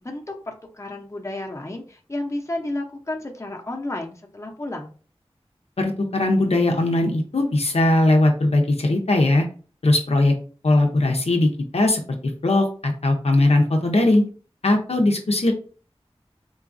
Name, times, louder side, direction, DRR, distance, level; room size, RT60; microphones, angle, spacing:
voice 1, 0.0-4.9, left 1 dB, 25° left, 1 dB, 0.7 m, -32 dB
voice 2, 5.8-9.5 9.8-10.3 10.6-12.0 12.4-14.2 14.6-15.5, left 2 dB, 70° left, 3 dB, 0.6 m, -19 dB
3.8 x 2.3 x 2.5 m, 0.39 s
wide cardioid pair, 45°, 11 cm